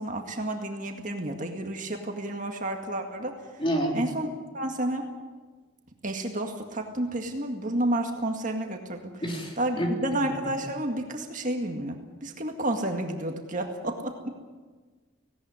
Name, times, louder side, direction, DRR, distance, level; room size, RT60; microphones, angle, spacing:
voice 1, 0.0-3.3 3.9-4.3 4.5-5.0 6.0-9.2 9.6-14.3, right 1 dB, 40° right, 3 dB, 2.0 m, -30 dB
voice 2, 3.6-4.0 9.2-9.9, equal, 25° left, 0 dB, 3.5 m, -28 dB
18.0 x 17.5 x 9.8 m, 1.4 s
head